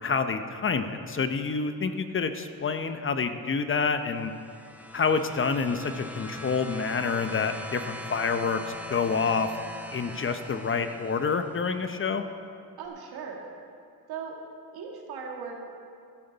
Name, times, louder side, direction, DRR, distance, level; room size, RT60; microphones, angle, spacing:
voice 1, 0.0-4.3 4.9-9.5 9.9-12.2, left 5 dB, 35° left, 9 dB, 0.7 m, -28 dB
sound 1, 4.0-11.8 12.8-12.9, equal, 5° right, 1.1 m, -42 dB
voice 2, 12.8-13.4 14.1-14.4 14.7-15.5, right 6 dB, 90° right, 0 dB, 1.9 m, -38 dB
13.0 x 12.0 x 4.0 m, 2.4 s
cardioid pair, 95°, 37 cm